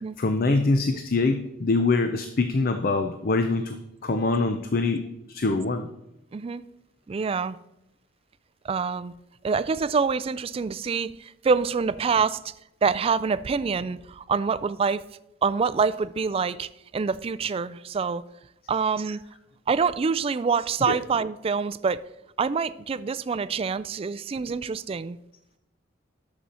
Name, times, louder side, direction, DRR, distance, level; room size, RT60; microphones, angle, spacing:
voice 1, 0.2-3.8 4.0-5.9 20.9-21.0, left 3 dB, 50° left, 0.6 m, -24 dB
voice 2, 6.3-6.6 7.1-7.6 8.6-9.1 9.4-12.5 12.8-15.0 15.4-18.2 18.7-19.2 19.7-22.0 22.4-25.2, right 5 dB, 30° right, 0.3 m, -26 dB
11.0 x 6.9 x 4.3 m
head